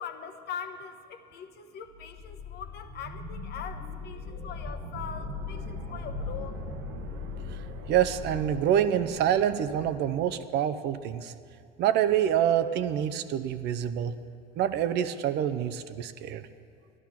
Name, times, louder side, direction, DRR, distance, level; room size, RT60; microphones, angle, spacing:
voice 1, 0.0-6.6, left 7 dB, 55° left, 7 dB, 1.1 m, -41 dB
sound 1, 1.9-10.2, right 2 dB, 80° right, 1.4 m, -42 dB
sound 2, 2.2-8.6, left 11 dB, 20° left, 0.4 m, -41 dB
voice 2, 7.9-11.3 11.8-14.1 14.6-16.5, right 10 dB, 55° right, 12 dB, 0.7 m, -26 dB
13.5 x 11.0 x 5.9 m, 2.3 s
supercardioid pair, 115°, 21 cm